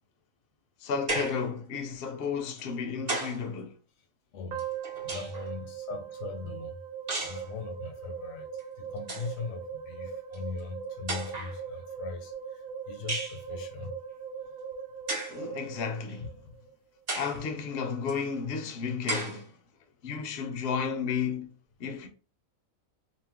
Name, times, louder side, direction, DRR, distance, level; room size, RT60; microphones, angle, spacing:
voice 1, 0.8-3.7 15.3-16.4 17.1-19.5 20.0-21.5 21.8-22.1, left 6 dB, 65° left, 0.6 m, -33 dB
sound 1, 1.1-1.5 2.6-3.5 4.6-5.5 7.1-7.5 8.6-8.7 9.0-9.3 10.3-10.4 11.1-11.6 13.1-13.4 15.1-15.4 16.1-16.2 17.1-17.4 18.1-18.2 19.1-19.4, right 2 dB, 40° right, 0.7 m, -34 dB
voice 2, 4.3-4.6 5.0-6.7 7.2-8.5 8.8-12.3 12.9-13.9 17.3-17.4, left 5 dB, 80° left, 1.0 m, -40 dB
sound 2, 4.5-16.7, right 7 dB, 90° right, 1.0 m, -40 dB
2.5 x 2.1 x 3.3 m
omnidirectional pair, 1.4 m